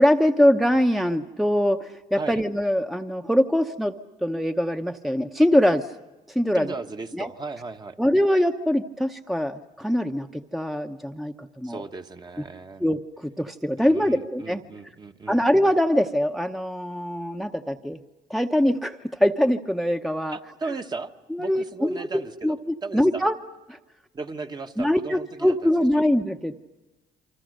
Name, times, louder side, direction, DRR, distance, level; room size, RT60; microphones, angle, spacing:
voice 1, 0.0-5.9 6.3-6.7 7.2-7.3 8.0-11.8 12.8-14.6 15.3-18.0 18.3-20.4 21.3-23.3 23.7-23.8 24.8-26.5, equal, ahead, 6 dB, 0.8 m, -23 dB
voice 2, 6.5-8.0 11.6-12.8 13.8-15.4 20.3-21.1 21.4-23.2 24.1-26.0, right 3 dB, 30° right, 6 dB, 1.3 m, -36 dB
28.5 x 24.5 x 6.6 m, 1.1 s
cardioid pair, 90°, 15 cm